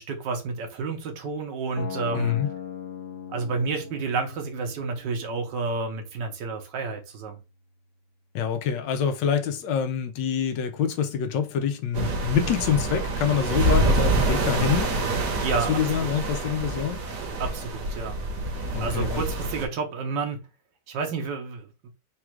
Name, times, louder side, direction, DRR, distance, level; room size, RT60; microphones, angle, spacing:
voice 1, 0.0-2.4 3.3-7.4 14.5-14.6 15.4-16.1 17.4-18.2 18.8-20.4 20.9-21.9, right 4 dB, 75° right, 1.4 m, -30 dB
sound 1, 1.8-7.8, left 7 dB, 60° left, 0.8 m, -41 dB
voice 2, 2.1-2.5 8.3-14.9 15.7-17.0 18.7-19.2, left 8 dB, 85° left, 1.3 m, -26 dB
sound 2, 11.9-19.6, right 2 dB, 55° right, 1.2 m, -26 dB
4.0 x 2.4 x 4.4 m
omnidirectional pair, 1.9 m